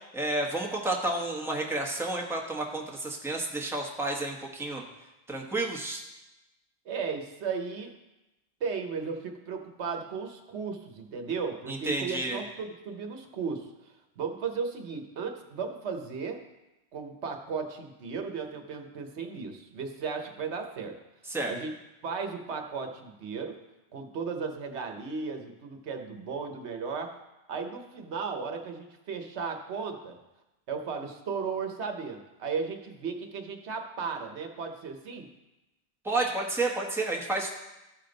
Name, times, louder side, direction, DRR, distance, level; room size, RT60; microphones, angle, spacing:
voice 1, 0.1-4.8 5.3-6.0 11.7-12.4 21.3-21.5 36.0-37.5, right 2 dB, ahead, -1 dB, 1.0 m, -30 dB
voice 2, 6.9-7.9 8.6-13.7 14.2-16.4 16.9-21.0 21.5-21.7 22.0-23.6 23.9-27.1 27.5-30.2 30.7-35.3, right 5 dB, 85° right, 4 dB, 1.2 m, -35 dB
14.0 x 5.1 x 3.9 m, 0.99 s
omnidirectional pair, 1.1 m